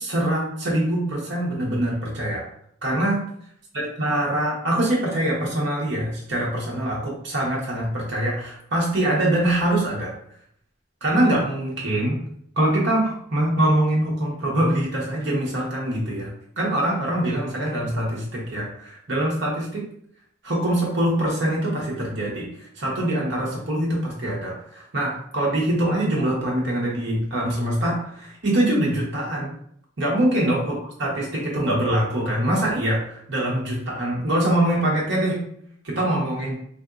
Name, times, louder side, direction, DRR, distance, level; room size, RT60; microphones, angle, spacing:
voice 1, 0.0-2.4 2.8-3.2 3.7-10.1 11.0-12.2 12.6-19.9 20.4-29.5 30.0-35.4 35.8-36.5, right 1 dB, 60° right, -4 dB, 1.1 m, -24 dB
3.6 x 2.6 x 2.4 m, 0.66 s
head